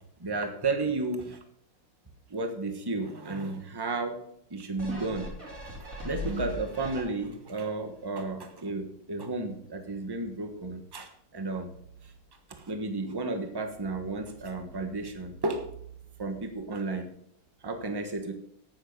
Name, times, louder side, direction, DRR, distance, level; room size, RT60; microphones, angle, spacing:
voice 1, 0.2-1.4 2.3-4.2 4.5-5.3 5.7-11.7 12.6-15.7 16.2-17.1 17.6-18.3, right 3 dB, 15° right, 6 dB, 1.0 m, -33 dB
sound 1, 4.8-7.5 8.0-8.1, equal, 45° right, 4.2 m, -38 dB
9.2 x 8.9 x 5.3 m, 0.69 s
omnidirectional pair, 2.0 m